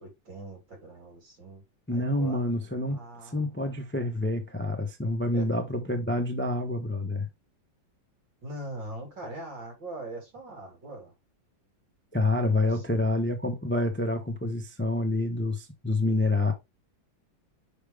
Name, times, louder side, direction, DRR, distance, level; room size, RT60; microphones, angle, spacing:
voice 1, 0.0-1.6 1.9-2.4 2.9-3.5 5.3-5.5 8.4-11.1 12.6-13.1, right 1 dB, 65° right, 3.6 m, -41 dB
voice 2, 1.9-3.0 3.3-7.3 12.1-16.5, left 2 dB, 20° left, 0.3 m, -27 dB
5.8 x 5.1 x 3.5 m
omnidirectional pair, 2.1 m